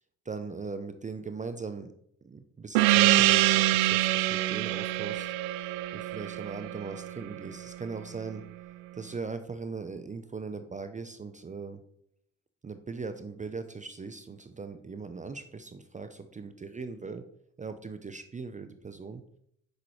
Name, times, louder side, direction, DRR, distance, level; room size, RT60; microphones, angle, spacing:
voice 1, 0.3-1.9 2.2-8.5 8.9-11.8 12.6-17.2 17.6-19.2, right 4 dB, 20° right, 10 dB, 0.5 m, -40 dB
Gong, 2.8-7.8, right 15 dB, 85° right, 0.5 m, -25 dB
7.7 x 6.0 x 3.1 m, 0.72 s
hypercardioid pair, 60°, 37 cm